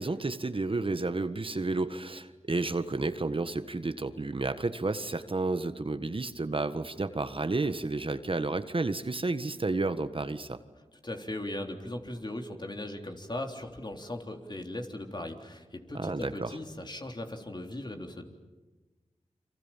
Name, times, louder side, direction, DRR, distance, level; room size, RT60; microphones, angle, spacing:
voice 1, 0.0-10.6 15.9-16.5, right 3 dB, 45° right, 10 dB, 1.5 m, -31 dB
voice 2, 11.0-18.3, left 1 dB, 35° left, 4 dB, 3.7 m, -38 dB
29.5 x 24.5 x 7.4 m, 1.2 s
cardioid pair, 45°, 12 cm